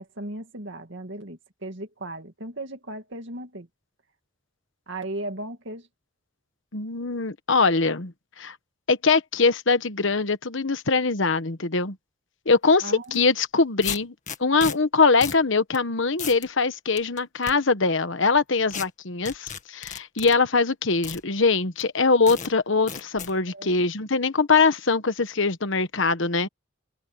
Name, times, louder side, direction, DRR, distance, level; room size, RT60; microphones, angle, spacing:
voice 1, 0.0-3.7 4.9-5.9 12.8-13.2 23.5-23.7, right 1 dB, 60° right, 2.3 m, -36 dB
voice 2, 6.7-8.5 8.9-12.0 12.5-14.1 14.4-26.5, left 4 dB, 60° left, 1.2 m, -22 dB
sound 1, 13.0-13.2 13.8-14.8 15.2-15.4 15.7-15.8 16.2-16.5 17.0-17.5 18.7-18.9 19.3-20.4 21.0-21.2 21.8-21.9 22.3-22.5 22.9-23.3, left 7 dB, 40° left, 1.9 m, -34 dB
head